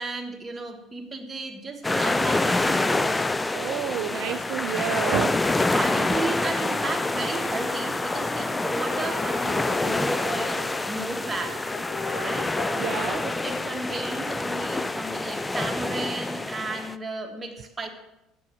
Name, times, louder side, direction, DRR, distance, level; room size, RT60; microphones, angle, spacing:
voice 1, 0.0-3.2 5.7-11.7 12.1-12.5 13.2-17.9, right 3 dB, 20° right, 3 dB, 1.5 m, -34 dB
sound 1, 1.8-17.0, left 2 dB, 15° left, 0.4 m, -27 dB
voice 2, 3.5-5.4 12.8-13.2, right 11 dB, 55° right, 8 dB, 0.4 m, -29 dB
sound 2, 7.1-7.5 8.5-10.9 11.4-13.2, left 3 dB, 55° left, 4.8 m, -38 dB
9.5 x 7.0 x 6.2 m, 0.90 s
figure-of-eight pair, 60°, 0 cm